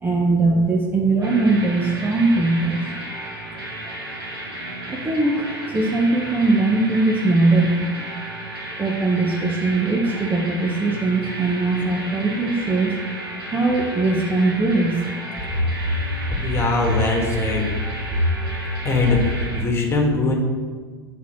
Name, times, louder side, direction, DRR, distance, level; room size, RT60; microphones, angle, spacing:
voice 1, 0.0-2.9 4.9-7.9 8.8-12.9 13.5-15.0, right 2 dB, 15° right, 0 dB, 1.0 m, -20 dB
sound 1, 1.2-19.6, right 1 dB, 80° right, 2.4 m, -33 dB
voice 2, 16.4-17.7 18.1-18.2 18.8-20.3, left 2 dB, 20° left, 1 dB, 2.0 m, -20 dB
8.2 x 4.6 x 6.1 m, 1.5 s
figure-of-eight pair, 85°, 12 cm